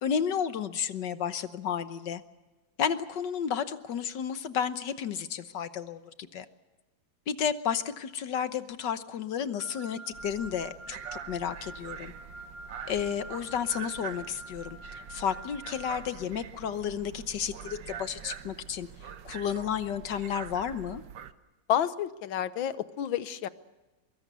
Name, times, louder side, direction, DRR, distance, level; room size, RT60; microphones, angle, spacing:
voice 1, 0.0-2.2 2.8-6.4 7.3-12.1 12.9-14.8 15.1-18.9 19.2-21.0, left 8 dB, 70° left, 11 dB, 1.6 m, -32 dB
Wind instrument woodwind instrument, 9.6-16.0, right 1 dB, 40° right, 6.2 m, -46 dB
sound 1, 10.1-21.3, right 8 dB, 75° right, 1.6 m, -44 dB
voice 2, 21.7-23.5, left 10 dB, 85° left, 14 dB, 1.7 m, -29 dB
23.5 x 23.0 x 6.8 m, 1.1 s
omnidirectional pair, 2.1 m